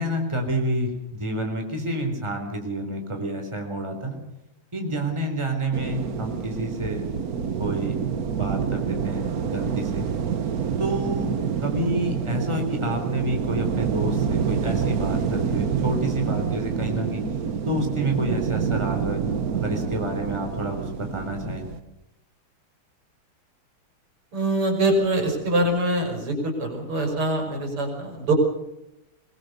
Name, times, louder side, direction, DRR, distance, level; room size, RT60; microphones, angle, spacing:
voice 1, 0.0-4.2 4.7-7.0 7.6-10.1 10.8-17.2 17.6-19.2 19.5-21.6, right 1 dB, 10° right, 3 dB, 3.9 m, -29 dB
sound 1, 5.7-21.8, right 7 dB, 50° right, 1.4 m, -27 dB
voice 2, 24.3-28.3, right 1 dB, 85° right, 2 dB, 6.1 m, -24 dB
22.5 x 21.0 x 6.8 m, 0.88 s
omnidirectional pair, 2.4 m